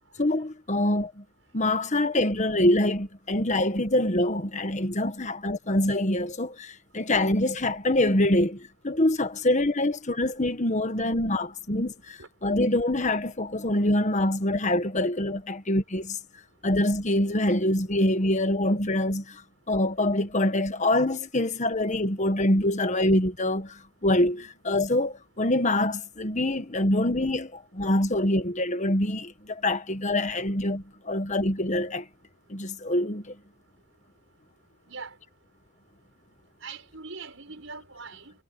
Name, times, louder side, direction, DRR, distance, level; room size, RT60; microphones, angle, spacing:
voice 1, 0.2-1.2 1.5-16.2 16.6-19.4 19.7-32.1 32.5-33.3, left 1 dB, 35° left, 1.5 m, -25 dB
voice 2, 36.6-38.3, right 4 dB, 70° right, 7.0 m, -41 dB
head